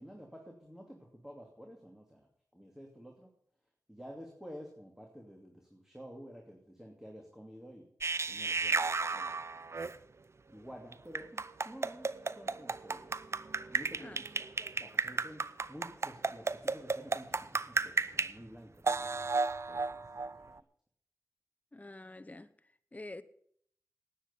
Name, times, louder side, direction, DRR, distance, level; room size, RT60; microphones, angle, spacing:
voice 1, 0.0-2.3 2.5-3.3 3.9-7.9 8.2-9.4 10.5-13.1 13.7-14.2 14.6-19.2 19.7-20.0 20.4-20.6, equal, 5° right, 2.6 m, -51 dB
sound 1, 8.0-10.0 10.9-18.3 18.9-20.6, right 4 dB, 45° right, 0.6 m, -34 dB
voice 2, 21.7-22.5 22.9-23.2, left 2 dB, 25° left, 0.9 m, -47 dB
9.9 x 9.6 x 8.5 m
cardioid pair, 45°, 6 cm